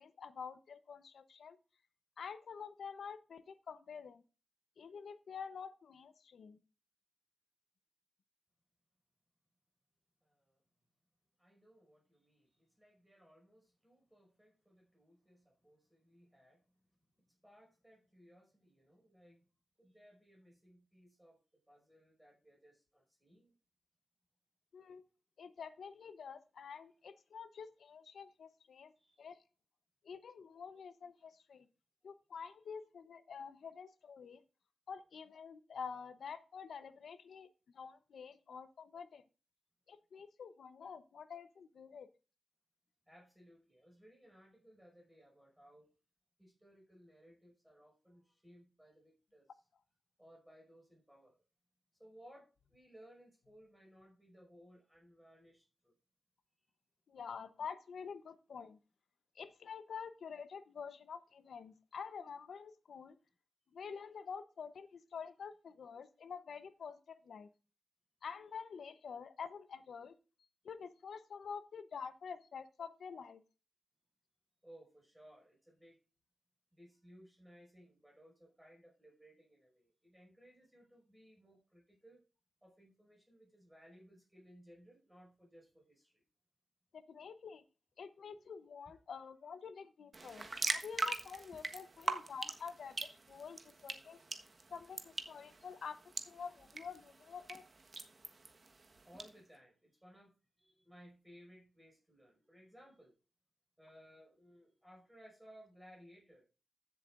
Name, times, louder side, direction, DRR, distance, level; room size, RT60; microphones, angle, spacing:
voice 1, 0.0-1.6 2.2-4.2 4.8-6.6 24.7-25.0 25.4-28.9 29.2-29.4 30.0-31.7 32.0-34.4 34.9-37.5 37.7-39.2 39.9-42.1 57.1-58.8 59.3-63.2 63.7-67.5 68.2-70.1 70.6-73.4 86.9-87.6 88.0-94.2 94.7-97.6, left 6 dB, 90° left, 12 dB, 0.8 m, -48 dB
voice 2, 10.2-10.6 11.4-16.8 17.4-19.4 19.8-21.4 21.7-23.5 29.0-29.2 43.1-45.9 46.4-49.5 50.2-51.4 51.9-55.9 74.6-76.0 76.7-82.2 82.6-86.2 88.3-88.5 88.9-89.0 99.0-103.1 103.8-106.4, equal, 10° right, -1 dB, 5.5 m, -62 dB
sound 1, 90.1-99.3, right 3 dB, 45° right, 1.3 m, -43 dB
15.5 x 7.4 x 2.5 m, 0.33 s
cardioid pair, 80°, 0 cm